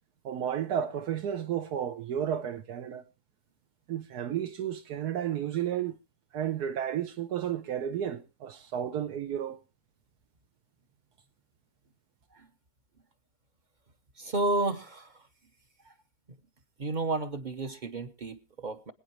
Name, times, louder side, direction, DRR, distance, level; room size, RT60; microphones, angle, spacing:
voice 1, 0.2-3.0 3.9-6.0 6.3-9.6, right 9 dB, 85° right, 1.4 m, -32 dB
voice 2, 14.2-15.3 15.8-15.9 16.8-18.9, right 2 dB, 40° right, 0.8 m, -32 dB
25.5 x 8.9 x 3.0 m
omnidirectional pair, 1.6 m